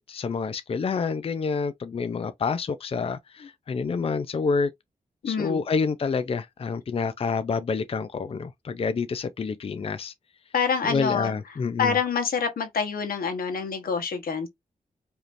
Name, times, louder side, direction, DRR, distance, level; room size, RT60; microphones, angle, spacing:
voice 1, 0.1-4.7 5.3-10.1 10.8-12.0, left 5 dB, 40° left, 0.4 m, -28 dB
voice 2, 5.2-5.6 10.5-11.3 11.8-14.5, left 6 dB, 85° left, 1.3 m, -26 dB
5.1 x 2.9 x 2.6 m
wide cardioid pair, 105°, 15 cm